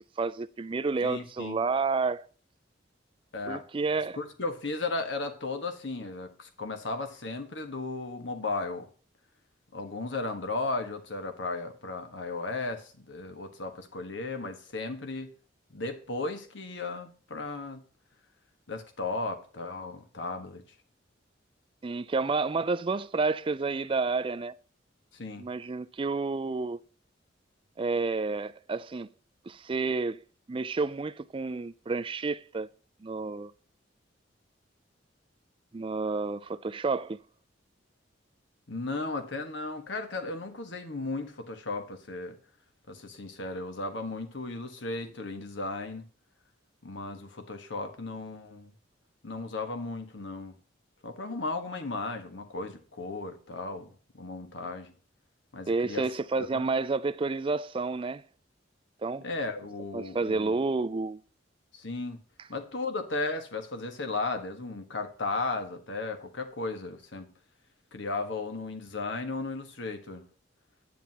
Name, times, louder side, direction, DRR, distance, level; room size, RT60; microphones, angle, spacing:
voice 1, 0.2-2.3 3.5-4.2 21.8-24.6 25.4-26.8 27.8-29.1 29.5-30.2 30.5-32.7 33.0-33.5 35.7-37.2 55.7-58.2 59.0-59.3 59.9-61.2, right 3 dB, 25° right, 0.4 m, -30 dB
voice 2, 1.0-1.6 3.3-3.6 4.1-8.9 9.7-15.3 15.7-17.8 18.7-20.6 25.1-25.5 38.7-42.4 42.9-46.1 46.8-48.7 49.2-50.5 51.0-54.9 55.5-56.1 56.4-56.7 59.2-60.6 61.7-62.2 62.5-67.3 67.9-70.3, left 3 dB, 75° left, 1.5 m, -35 dB
10.0 x 9.3 x 2.9 m
head